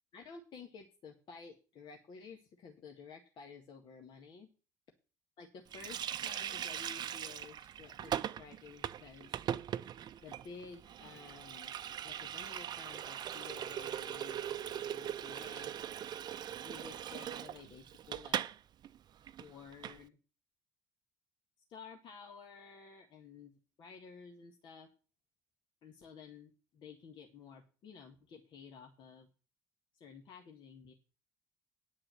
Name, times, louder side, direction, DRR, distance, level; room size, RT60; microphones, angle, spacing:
voice 1, 0.1-4.5 5.4-9.4 10.2-11.7 12.0-15.8 16.6-18.4 19.4-20.2 21.7-24.9 25.8-29.3 29.9-30.9, left 5 dB, 55° left, 3 dB, 1.7 m, -53 dB
Water tap faucet, 5.7-18.6 18.8-19.0 19.3-20.0, right 10 dB, 45° right, 0.6 m, -40 dB
9.8 x 6.8 x 7.8 m, 0.36 s
figure-of-eight pair, 55°, 10 cm